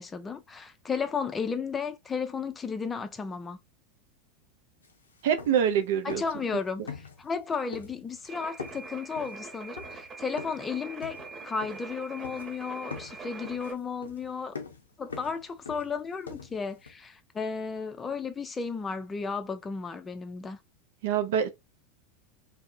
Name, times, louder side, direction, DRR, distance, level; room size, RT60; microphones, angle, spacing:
voice 1, 0.0-3.6 6.0-11.2 11.4-14.6 15.0-20.6, left 5 dB, 20° left, 0.4 m, -34 dB
sound 1, 4.8-4.9 5.2-5.8 6.1-6.5 6.9-7.4 7.7-8.3 8.6-10.7 11.0-12.0 12.2-12.6 12.9-16.9, left 5 dB, 90° left, 0.4 m, -43 dB
voice 2, 5.2-6.2 21.0-21.5, right 8 dB, 65° right, 0.4 m, -25 dB
sound 2, 8.3-13.7, right 3 dB, 35° right, 1.0 m, -43 dB
2.5 x 2.0 x 2.4 m
hypercardioid pair, 90°, 0 cm